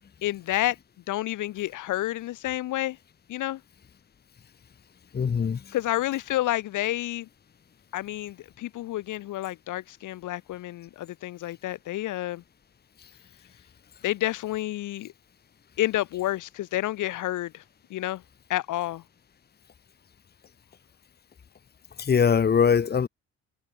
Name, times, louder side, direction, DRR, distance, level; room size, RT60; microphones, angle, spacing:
voice 1, 0.2-0.8 1.1-3.0 3.3-3.6 5.7-7.3 7.9-12.4 14.0-15.1 15.8-17.6 17.9-18.2 18.5-19.0, left 15 dB, 80° left, 1.5 m, -29 dB
voice 2, 5.1-5.6 22.0-23.1, left 7 dB, 35° left, 1.1 m, -22 dB
cardioid pair, 90°, 30 cm